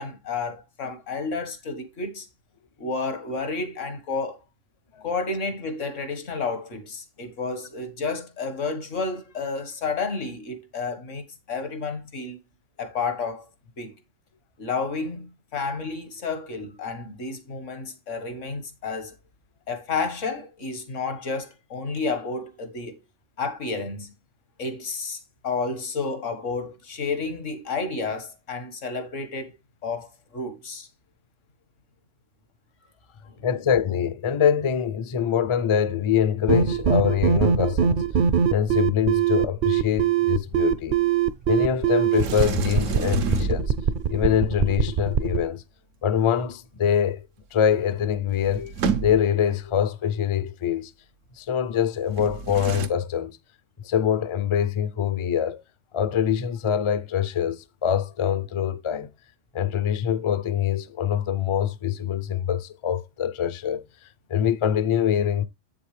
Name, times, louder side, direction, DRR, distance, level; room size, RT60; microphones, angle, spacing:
voice 1, 0.0-2.3 2.8-4.4 5.0-12.4 12.8-13.5 13.8-13.9 14.6-19.1 19.7-23.0 23.4-24.1 24.6-29.6 29.8-30.9, left 4 dB, 80° left, 1.9 m, -31 dB
voice 2, 33.4-38.1 38.5-41.0 41.5-43.7 44.1-45.6 46.0-47.2 47.5-48.7 49.0-50.9 51.4-53.4 53.8-55.6 55.9-59.1 59.5-63.8 64.3-65.4, left 8 dB, 40° left, 0.4 m, -24 dB
sound 1, 36.5-45.4, right 8 dB, 55° right, 0.6 m, -22 dB
Sliding door, 42.1-44.1 47.6-47.7 47.9-49.5 52.1-52.9, right 5 dB, 90° right, 1.3 m, -30 dB
8.1 x 7.1 x 3.3 m
omnidirectional pair, 1.3 m